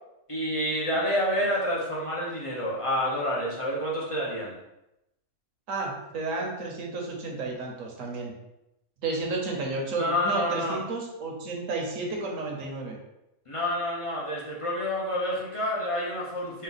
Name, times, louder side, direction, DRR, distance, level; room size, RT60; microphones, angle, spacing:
voice 1, 0.3-4.5 10.0-10.8 13.5-16.6, left 1 dB, 35° left, -5 dB, 0.5 m, -28 dB
voice 2, 5.7-8.3 9.0-13.0, right 3 dB, 65° right, 0 dB, 1.2 m, -32 dB
4.3 x 2.3 x 3.9 m, 0.89 s
omnidirectional pair, 1.5 m